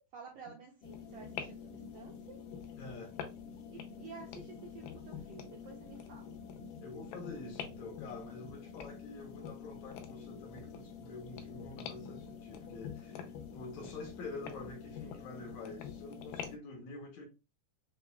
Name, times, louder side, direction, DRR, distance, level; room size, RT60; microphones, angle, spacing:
voice 1, 0.0-2.4 3.7-6.3, right 5 dB, 75° right, 1.5 m, -52 dB
sound 1, 0.8-16.6, left 7 dB, 85° left, 2.3 m, -46 dB
voice 2, 2.8-3.1 6.8-17.3, left 3 dB, 70° left, 2.0 m, -47 dB
6.7 x 2.3 x 2.2 m
omnidirectional pair, 3.7 m